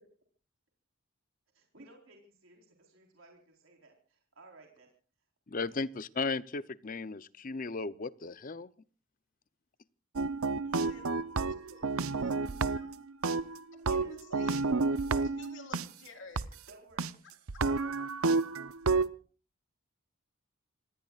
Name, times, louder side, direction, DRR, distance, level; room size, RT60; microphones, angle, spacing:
voice 1, 1.5-4.9 16.7-17.1, right 2 dB, 65° right, 1 dB, 4.3 m, -57 dB
voice 2, 5.5-8.7, left 4 dB, 40° left, 16 dB, 0.7 m, -36 dB
sound 1, 10.2-13.0 13.2-15.9 16.4-16.5 17.0-17.1 17.5-19.1, right 4 dB, 80° right, 0.8 m, -30 dB
voice 3, 10.6-11.1 11.4-12.9 13.7-14.6 15.2-16.5, left 3 dB, 60° left, 4 dB, 3.8 m, -52 dB
27.5 x 19.5 x 2.4 m, 0.39 s
head